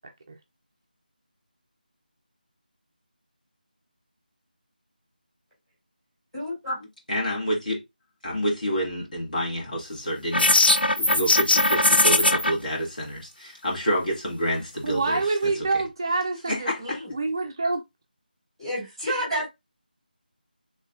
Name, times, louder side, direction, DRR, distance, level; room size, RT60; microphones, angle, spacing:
voice 1, 6.3-6.9 16.8-17.1 18.6-19.5, equal, ahead, 1.7 m, -30 dB
voice 2, 7.1-7.8 8.2-15.2 16.5-17.0, equal, 60° left, 2.0 m, -28 dB
sound 1, 10.3-12.5, left 2 dB, 85° left, 0.5 m, -19 dB
voice 3, 14.8-16.7 17.1-17.8, right 3 dB, 25° right, 0.4 m, -26 dB
4.0 x 3.2 x 2.4 m
figure-of-eight pair, 165°, 5 cm